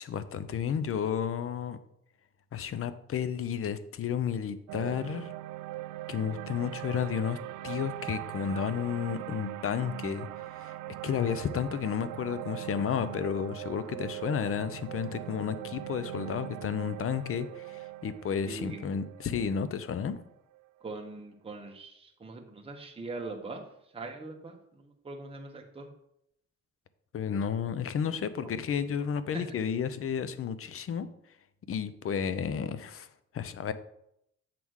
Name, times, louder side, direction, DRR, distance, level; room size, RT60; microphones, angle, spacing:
voice 1, 0.0-1.8 2.5-5.3 6.1-7.4 7.6-10.3 10.5-10.8 11.0-20.2 27.1-31.1 31.7-33.1 33.3-33.7, left 7 dB, 45° left, 13 dB, 0.7 m, -32 dB
sound 1, 4.7-20.9, right 16 dB, 90° right, 0.5 m, -41 dB
voice 2, 18.4-18.9 20.8-23.7 23.9-25.8 29.3-29.4, right 3 dB, 20° right, 1 dB, 1.2 m, -41 dB
7.7 x 3.6 x 6.3 m, 0.78 s
cardioid pair, 90°, 30 cm